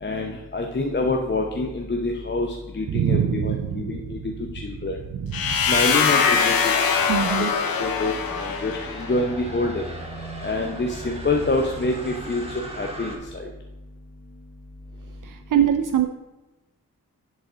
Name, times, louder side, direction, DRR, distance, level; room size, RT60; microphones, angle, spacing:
voice 1, 0.0-4.2 4.6-5.0 5.7-6.7 7.0-7.5 7.8-9.9 10.4-13.5, left 2 dB, 30° left, 1 dB, 0.8 m, -26 dB
voice 2, 2.9-4.2 5.1-5.7 7.1-7.5 15.2-16.1, right 9 dB, 65° right, 7 dB, 0.5 m, -24 dB
sound 1, 5.3-9.2, left 6 dB, 85° left, 0.8 m, -22 dB
sound 2, 7.7-13.2, right 1 dB, 15° right, 1.8 m, -38 dB
10.0 x 4.1 x 3.8 m, 1.1 s
cardioid pair, 50°, 35 cm